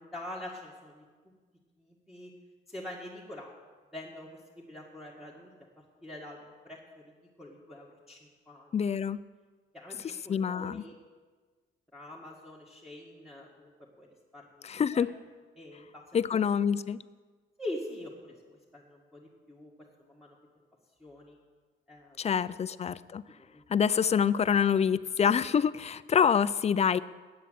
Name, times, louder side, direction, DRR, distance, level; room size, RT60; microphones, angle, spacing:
voice 1, 0.0-1.3 1.8-2.3 2.7-3.5 3.9-5.5 6.0-8.7 9.7-11.0 11.9-14.1 14.3-15.1 15.5-16.2 17.6-19.7 20.0-20.4 21.0-21.4 21.9-22.2 23.4-23.6, left 1 dB, ahead, -5 dB, 1.7 m, -45 dB
voice 2, 8.7-9.2 10.3-10.8 14.6-15.1 16.1-17.0 22.2-23.2 23.7-27.0, left 7 dB, 35° left, 17 dB, 0.4 m, -26 dB
8.7 x 8.2 x 9.4 m, 1.4 s
cardioid pair, 90°, 20 cm